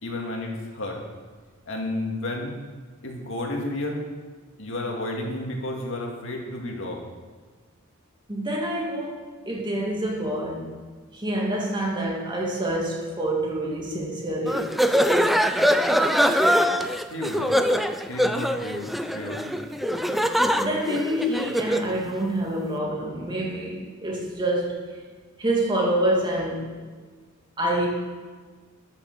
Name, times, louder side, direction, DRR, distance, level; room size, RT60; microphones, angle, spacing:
voice 1, 0.0-1.0 1.7-2.5 3.0-4.1 4.6-7.0 17.1-17.6 18.1-19.5, left 1 dB, 60° left, 2.2 m, -31 dB
voice 2, 8.3-10.7 11.1-14.8 20.6-24.8 25.4-26.8 27.6-27.9, right 1 dB, 20° right, 2.3 m, -27 dB
sound 1, 14.5-21.9, equal, ahead, 0.4 m, -23 dB
12.5 x 6.9 x 6.9 m
head